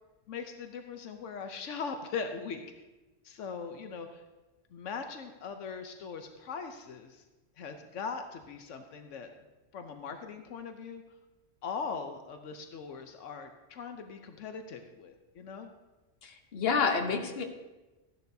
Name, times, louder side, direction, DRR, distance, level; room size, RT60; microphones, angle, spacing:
voice 1, 0.3-2.8 3.2-4.2 4.7-7.2 7.6-9.3 9.7-11.0 11.6-15.7, left 5 dB, 80° left, 6 dB, 1.1 m, -40 dB
voice 2, 16.2-17.4, left 5 dB, 55° left, 4 dB, 1.2 m, -29 dB
14.0 x 11.0 x 2.7 m, 1.1 s
omnidirectional pair, 1.3 m